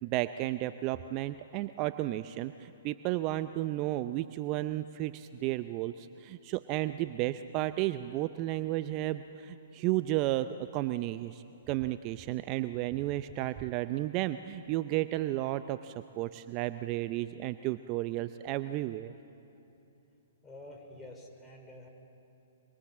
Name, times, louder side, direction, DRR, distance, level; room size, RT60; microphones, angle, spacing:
voice 1, 0.0-19.1, right 15 dB, 35° right, 11 dB, 0.6 m, -33 dB
voice 2, 20.4-21.9, left 1 dB, 15° left, 2 dB, 4.7 m, -48 dB
25.5 x 23.5 x 7.4 m, 2.9 s
hypercardioid pair, 130°, 0 cm